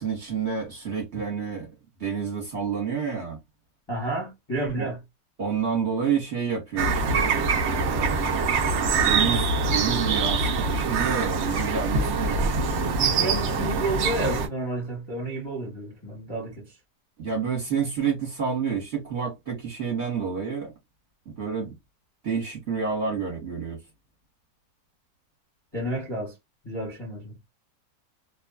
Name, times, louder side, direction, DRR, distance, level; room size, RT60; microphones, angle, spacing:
voice 1, 0.0-1.7 2.0-3.4 4.8-4.9 5.4-13.6 17.2-20.7 21.4-21.7 22.2-23.8, right 6 dB, 45° right, 1.1 m, -29 dB
voice 2, 3.9-5.0 13.0-16.7 25.7-26.3 26.6-27.3, right 1 dB, 20° left, 0.7 m, -31 dB
sound 1, 6.8-14.5, right 4 dB, 75° right, 0.6 m, -24 dB
2.9 x 2.3 x 2.2 m
omnidirectional pair, 1.9 m